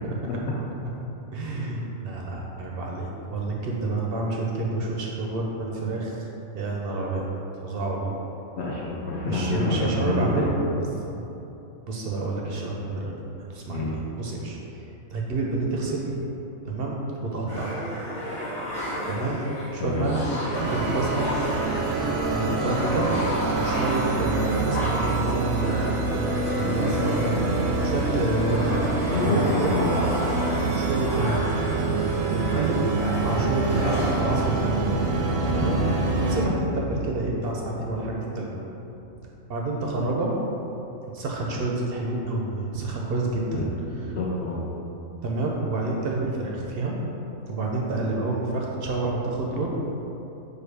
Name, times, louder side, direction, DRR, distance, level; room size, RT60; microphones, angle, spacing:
voice 1, 1.3-6.3 6.5-7.3 7.6-8.1 9.3-10.7 11.1-11.2 11.9-13.2 13.5-14.6 15.1-16.1 16.6-17.7 19.1-19.4 19.7-20.3 20.7-21.3 22.3-23.1 23.6-26.0 26.6-27.4 27.8-28.8 29.2-29.8 30.7-31.4 32.3-34.9 35.5-35.8 36.2-38.5 39.5-40.3 41.1-43.7 45.2-47.0 47.5-49.7, right 2 dB, 60° right, -2 dB, 0.6 m, -28 dB
voice 2, 8.6-10.4 13.7-13.9 19.8-20.1 29.1-30.0 35.5-35.8 43.5-43.6 43.9-44.6, left 3 dB, 65° left, -5 dB, 0.8 m, -27 dB
sound 1, 17.5-34.2, equal, 25° left, 1.0 m, -32 dB
sound 2, 20.5-36.4, right 3 dB, 80° right, 1.0 m, -26 dB
sound 3, 24.1-38.0, right 3 dB, 80° left, 1.1 m, -35 dB
4.6 x 2.4 x 4.7 m, 2.9 s
omnidirectional pair, 1.4 m